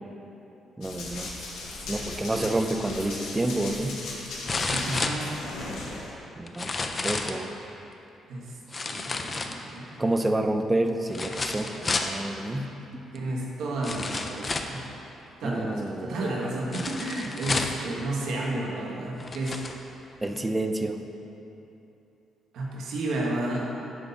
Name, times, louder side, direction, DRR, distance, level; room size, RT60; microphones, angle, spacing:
Run, 0.8-6.1, left 2 dB, 90° left, 1.1 m, -37 dB
voice 1, 0.8-1.3 1.9-4.0 6.4-7.5 10.0-13.0 15.4-16.2 20.2-21.0, right 1 dB, 15° right, 6 dB, 0.5 m, -29 dB
sound 1, 3.1-3.2 4.5-5.8 6.5-7.4 8.7-9.9 11.1-12.2 13.2-13.3 13.8-14.8 16.7-17.9 18.7-18.8 19.2-19.8 20.4-20.5, left 3 dB, 35° left, 0.5 m, -31 dB
voice 2, 4.7-5.2 8.3-8.4 8.8-9.9 13.1-14.8 15.4-19.6 22.5-23.6, right 2 dB, 75° right, -3 dB, 1.3 m, -31 dB
8.0 x 5.4 x 4.2 m, 2.9 s
cardioid pair, 90°, 0 cm